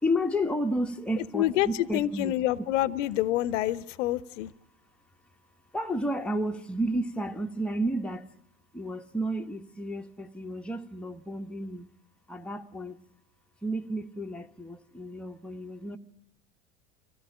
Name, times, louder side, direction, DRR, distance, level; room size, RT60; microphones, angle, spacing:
voice 1, 0.0-2.3 5.7-8.3 8.7-11.9 12.3-13.0 13.6-16.0, equal, ahead, 1.2 m, -31 dB
voice 2, 1.3-4.5, left 14 dB, 60° left, 0.9 m, -27 dB
25.5 x 16.5 x 10.0 m
figure-of-eight pair, 75°, 43 cm